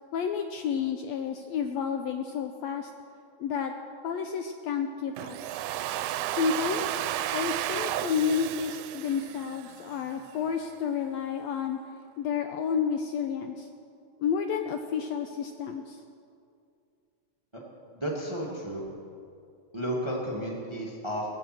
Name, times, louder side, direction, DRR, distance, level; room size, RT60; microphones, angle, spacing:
voice 1, 0.1-2.9 3.4-3.7 4.0-5.4 6.3-7.0 7.3-11.8 12.2-13.7 14.2-16.0, left 6 dB, 80° left, 6 dB, 1.6 m, -30 dB
Domestic sounds home sounds, 5.2-10.1, right 13 dB, 85° right, 2.0 m, -33 dB
voice 2, 17.9-18.8 19.7-21.3, equal, 15° right, -2 dB, 1.3 m, -32 dB
19.0 x 7.4 x 7.6 m, 2.5 s
omnidirectional pair, 3.5 m